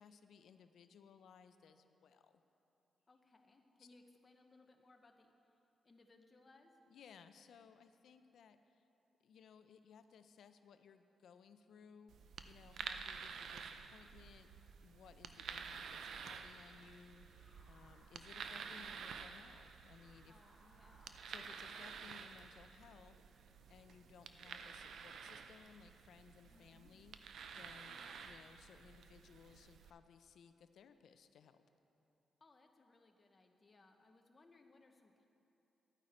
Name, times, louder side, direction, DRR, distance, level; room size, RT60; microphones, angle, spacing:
voice 1, 0.0-2.4 3.8-3.9 6.9-8.8 9.2-12.1 12.5-14.5 14.8-20.3 21.0-23.2 23.4-27.2 27.6-31.6, left 6 dB, 75° left, 9 dB, 0.5 m, -61 dB
voice 2, 3.1-5.5 5.8-6.7 12.8-13.2 20.3-21.1 26.5-26.9 27.9-28.2 32.4-35.3, left 2 dB, 30° left, 4 dB, 0.9 m, -66 dB
sound 1, 12.1-29.9, right 6 dB, 75° right, 0.4 m, -51 dB
sound 2, 17.0-21.9, right 1 dB, 20° right, 1.2 m, -69 dB
12.5 x 9.1 x 4.3 m, 2.9 s
cardioid pair, 115°, 0 cm